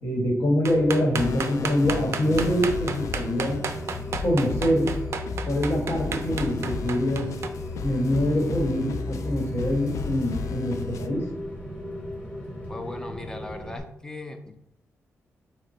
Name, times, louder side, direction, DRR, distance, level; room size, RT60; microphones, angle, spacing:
voice 1, 0.0-3.7 4.2-5.0 5.4-7.4 7.8-11.3, equal, 55° left, 1 dB, 1.2 m, -25 dB
sound 1, 0.6-7.5, right 6 dB, 60° right, 0.4 m, -32 dB
Rain, 0.7-13.8, left 1 dB, 35° left, 1.0 m, -37 dB
sound 2, 1.1-11.1, left 5 dB, 75° left, 0.3 m, -34 dB
voice 2, 12.7-14.6, left 2 dB, 10° left, 6 dB, 0.5 m, -38 dB
5.1 x 2.1 x 4.2 m, 0.82 s
wide cardioid pair, 115°, 5 cm